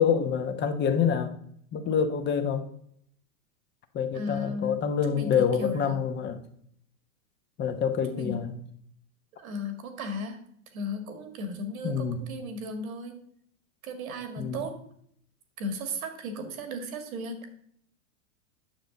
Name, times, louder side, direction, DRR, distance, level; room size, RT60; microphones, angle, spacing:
voice 1, 0.0-1.3 1.7-2.7 3.9-6.4 7.6-8.6 11.8-12.3 14.4-14.7, left 7 dB, 25° left, 8 dB, 1.0 m, -26 dB
voice 2, 4.1-4.8 5.1-6.0 8.1-8.4 9.4-10.4 10.7-13.2 13.8-14.8 15.6-17.5, left 1 dB, 80° right, 6 dB, 2.1 m, -35 dB
9.3 x 6.8 x 3.9 m, 0.66 s
hypercardioid pair, 125°, 42 cm